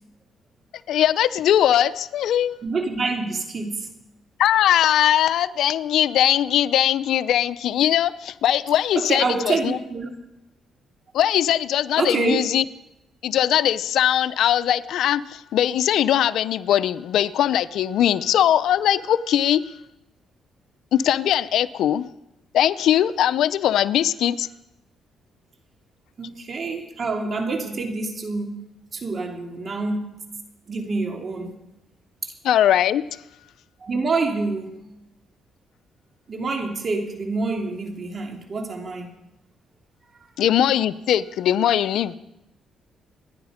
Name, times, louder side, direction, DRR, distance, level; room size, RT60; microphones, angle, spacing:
voice 1, 0.9-2.6 4.4-9.8 11.1-12.6 13.2-19.6 20.9-22.1 22.5-24.5 32.4-33.2 40.4-42.1, left 11 dB, 75° left, 0.6 m, -20 dB
voice 2, 2.6-3.9 8.9-10.1 12.0-12.5 26.2-28.6 28.9-30.2 30.7-31.5 32.2-32.3 33.8-34.7 36.3-39.1, right 3 dB, 40° right, 2.9 m, -27 dB
26.5 x 10.5 x 5.1 m
cardioid pair, 90°, 0 cm